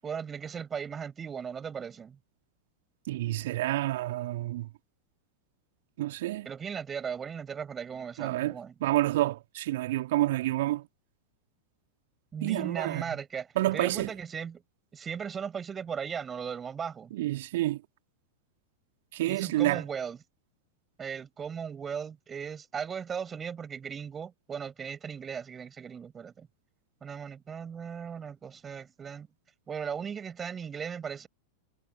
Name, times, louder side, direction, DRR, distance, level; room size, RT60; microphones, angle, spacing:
voice 1, 0.0-2.2 6.4-8.7 12.3-14.6 14.9-17.1 19.3-20.2 21.0-26.5 27.0-29.3 29.7-31.3, right 7 dB, 20° right, 6.9 m, -37 dB
voice 2, 3.1-4.7 6.0-6.5 8.2-8.6 8.8-10.8 12.4-13.2 13.6-14.1 17.1-17.8 19.1-19.8, right 16 dB, 55° right, 2.8 m, -28 dB
figure-of-eight pair, 90°, 0 cm